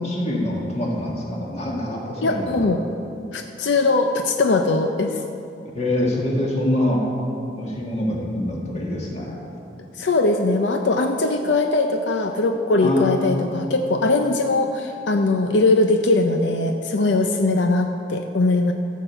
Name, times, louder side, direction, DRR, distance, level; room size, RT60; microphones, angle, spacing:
voice 1, 0.0-2.7 5.7-7.0 7.6-9.4 12.8-13.6, left 1 dB, 40° left, -2 dB, 1.8 m, -25 dB
voice 2, 2.2-2.8 3.3-5.2 9.9-18.7, left 2 dB, 90° left, 5 dB, 0.6 m, -20 dB
13.5 x 7.4 x 5.6 m, 2.7 s
head